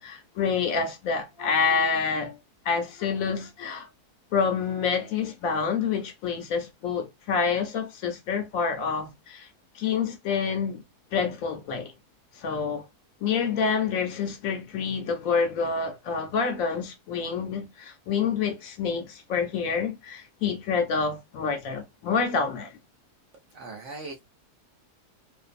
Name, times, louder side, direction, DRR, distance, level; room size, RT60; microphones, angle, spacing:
voice 1, 0.0-2.4 2.6-3.9 4.3-9.5 9.7-10.8 11.1-11.9 12.4-12.9 13.2-22.8, left 5 dB, 70° left, 0.9 m, -27 dB
voice 2, 23.5-24.2, right 3 dB, 60° right, 0.8 m, -39 dB
2.5 x 2.3 x 2.4 m
omnidirectional pair, 1.7 m